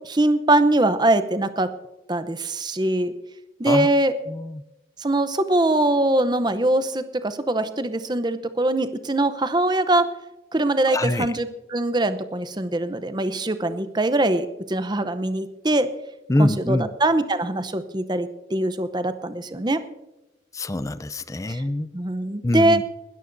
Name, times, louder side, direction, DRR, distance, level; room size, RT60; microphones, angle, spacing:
voice 1, 0.0-1.7 2.1-3.1 3.6-4.1 5.0-10.1 10.5-15.9 16.4-19.8 21.5-21.6 21.9-22.8, right 1 dB, 25° right, 11 dB, 0.7 m, -22 dB
voice 2, 4.3-4.6 10.9-11.3 16.3-16.9 20.5-21.9 22.4-22.8, left 1 dB, 15° left, 14 dB, 0.5 m, -24 dB
20.5 x 13.5 x 2.6 m, 0.97 s
head